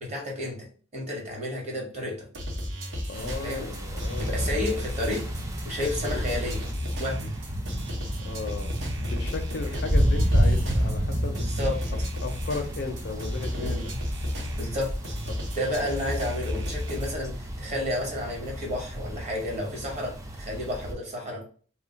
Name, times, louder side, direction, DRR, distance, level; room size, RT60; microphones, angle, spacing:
voice 1, 0.0-0.6 0.9-2.3 3.4-3.7 4.2-5.2 5.6-6.7 7.0-7.4 9.7-9.8 11.3-11.8 13.6-13.8 14.5-14.9 15.5-21.4, left 1 dB, 35° right, 0 dB, 1.0 m, -31 dB
sound 1, 2.3-17.1, left 1 dB, 65° right, 0.8 m, -34 dB
voice 2, 3.1-4.5 6.0-6.5 8.2-8.7 9.1-11.4 11.9-13.9 15.6-15.9, left 4 dB, 55° left, 6 dB, 0.5 m, -36 dB
sound 2, 3.1-20.9, equal, 15° right, 0.3 m, -31 dB
2.3 x 2.1 x 3.7 m, 0.41 s
head